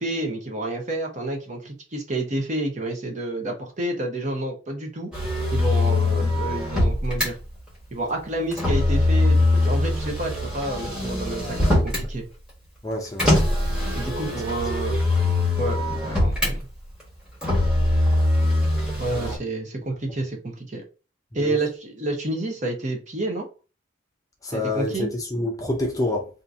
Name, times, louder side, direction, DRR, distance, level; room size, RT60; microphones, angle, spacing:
voice 1, 0.0-5.1 5.5-7.4 7.9-11.6 11.8-12.2 13.9-15.0 15.6-16.6 19.0-20.8 21.3-23.4 24.5-25.1, right 2 dB, 35° right, 0.8 m, -29 dB
Motor vehicle (road), 5.1-7.3 8.5-12.1 13.2-16.5 17.4-19.4, left 2 dB, 5° right, 1.2 m, -22 dB
voice 2, 12.8-13.4 19.1-19.4 21.4-21.6 24.4-26.3, left 2 dB, 15° left, 0.5 m, -27 dB
2.8 x 2.5 x 3.6 m
head